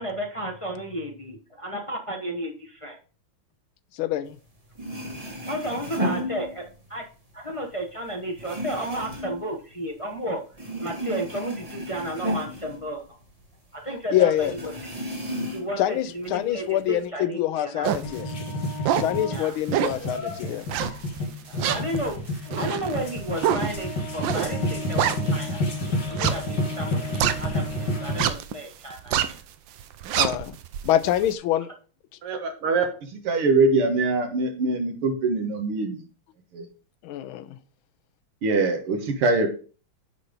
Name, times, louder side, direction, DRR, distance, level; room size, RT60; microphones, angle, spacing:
voice 1, 0.0-3.0 5.5-6.6 6.9-7.0 7.3-10.4 10.8-13.0 13.7-14.9 15.5-18.0 19.3-19.5 21.5-25.6 26.1-27.0 27.4-29.4, right 1 dB, 25° left, 0.7 m, -33 dB
voice 2, 4.0-4.4 14.1-14.5 15.8-18.3 19.0-20.7 30.2-30.6 30.8-31.7 37.0-37.6, left 12 dB, 80° left, 1.4 m, -25 dB
sound 1, 4.5-4.6 4.7-7.0 7.3-10.2 10.5-13.5 13.8-13.9 14.4-15.8 16.2-17.0, equal, 20° right, 1.6 m, -33 dB
sound 2, 17.8-18.1 18.6-19.2 19.7-20.1 20.7-21.2 21.6-25.6 26.1-27.7 28.1-28.5 28.9-29.4 29.8-31.3, right 10 dB, 70° right, 1.3 m, -26 dB
sound 3, 18.0-28.2, left 1 dB, 55° left, 2.5 m, -29 dB
voice 3, 32.2-32.8 33.1-36.0 36.5-36.6 38.4-39.5, right 3 dB, 90° right, 2.5 m, -23 dB
9.9 x 4.3 x 5.2 m
omnidirectional pair, 2.4 m